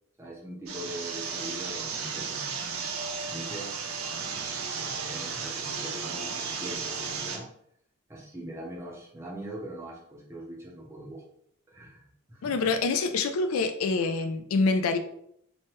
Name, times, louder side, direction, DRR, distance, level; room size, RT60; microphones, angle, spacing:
voice 1, 0.2-2.5 3.3-4.0 4.6-7.5 8.1-11.2 11.7-12.7, right 1 dB, 10° right, -4 dB, 0.6 m, -42 dB
sound 1, 0.7-7.4, right 5 dB, 75° right, 0.5 m, -34 dB
voice 2, 12.4-15.0, left 4 dB, 75° left, 8 dB, 0.3 m, -26 dB
3.1 x 2.2 x 2.9 m, 0.71 s
head